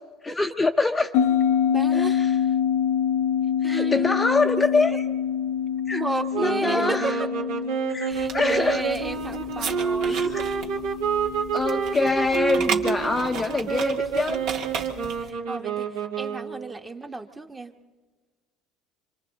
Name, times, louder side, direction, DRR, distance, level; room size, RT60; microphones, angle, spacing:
voice 1, 0.2-1.1 1.9-2.3 3.6-5.0 5.9-6.0 6.4-7.2 7.9-8.8 10.1-10.4 11.5-14.5, left 3 dB, 15° left, 5 dB, 0.7 m, -25 dB
sound 1, 1.1-13.9, left 8 dB, 75° left, 0.9 m, -27 dB
voice 2, 1.7-2.2 3.6-4.2 5.9-7.1 8.0-10.4 15.2-17.7, right 2 dB, 15° right, 5 dB, 1.2 m, -32 dB
sound 2, 6.3-16.7, right 6 dB, 75° right, 2.3 m, -28 dB
sound 3, 8.1-15.3, right 6 dB, 60° right, 2.1 m, -35 dB
27.0 x 26.0 x 4.1 m, 1.4 s
supercardioid pair, 120°, 0 cm